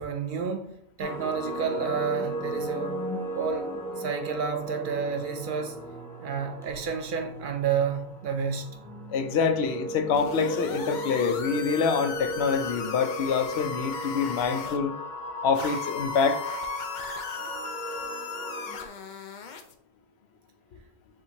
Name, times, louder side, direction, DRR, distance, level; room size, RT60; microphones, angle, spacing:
voice 1, 0.0-3.0 3.3-3.7 4.0-5.8 6.2-8.8, right 6 dB, 60° right, 0.7 m, -30 dB
sound 1, 1.0-18.9, right 1 dB, 5° left, 0.5 m, -36 dB
voice 2, 9.1-14.9 15.4-16.5, left 5 dB, 85° left, 0.9 m, -26 dB
sound 2, 10.1-14.8 15.6-19.7, left 6 dB, 60° left, 0.6 m, -38 dB
6.8 x 2.6 x 2.9 m
omnidirectional pair, 1.0 m